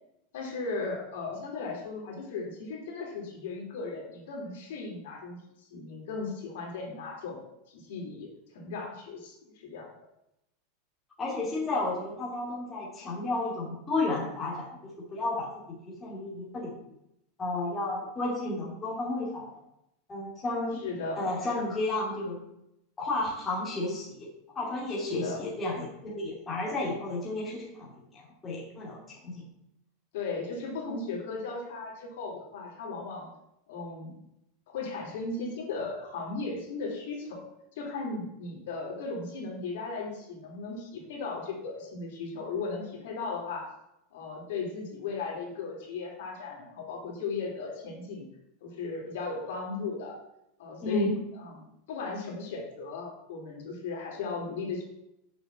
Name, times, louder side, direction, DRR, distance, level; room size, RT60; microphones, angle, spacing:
voice 1, 0.3-5.4 5.7-7.4 7.7-8.3 8.5-9.9 20.8-21.3 25.0-25.5 30.1-33.3 33.7-34.2 34.7-37.5 37.8-43.7 44.1-48.3 48.6-50.2 50.6-54.8, left 4 dB, 65° left, -1 dB, 3.3 m, -36 dB
voice 2, 11.2-16.7 17.4-19.5 20.1-20.8 21.1-22.4 23.0-24.3 24.5-27.9 28.1-29.0 29.2-29.4 50.8-51.2, left 2 dB, 15° left, -5 dB, 2.5 m, -32 dB
6.7 x 6.2 x 6.9 m, 0.83 s
supercardioid pair, 165°, 0 cm